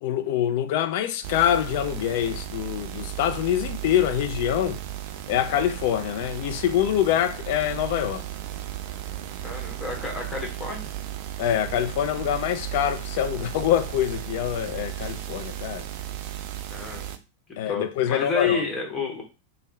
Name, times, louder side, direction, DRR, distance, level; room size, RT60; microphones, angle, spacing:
voice 1, 0.0-4.8 5.3-8.3 11.4-15.9 17.6-18.6, left 10 dB, 50° left, 0.4 m, -25 dB
sound 1, 1.2-17.2, right 12 dB, 45° right, 0.4 m, -35 dB
voice 2, 9.4-10.9 16.7-17.2 17.7-19.2, left 4 dB, 15° left, 1.3 m, -30 dB
3.5 x 2.1 x 3.8 m
figure-of-eight pair, 90°, 0 cm